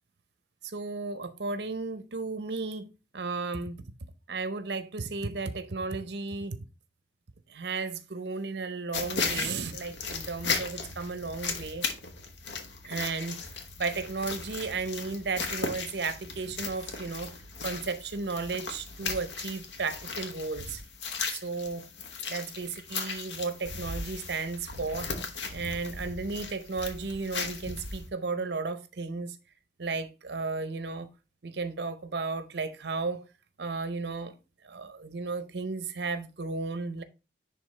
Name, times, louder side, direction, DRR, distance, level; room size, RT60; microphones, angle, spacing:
voice 1, 0.6-3.8 4.3-6.6 7.5-11.9 12.8-13.4 13.8-17.3 17.6-20.8 21.3-21.9 22.3-25.1 25.5-29.3 29.8-31.1 31.4-33.2 33.6-34.3 34.6-37.0, right 4 dB, 65° right, 0.7 m, -34 dB
sound 1, 8.9-28.1, left 4 dB, 75° left, 1.1 m, -37 dB
10.0 x 3.5 x 3.3 m
head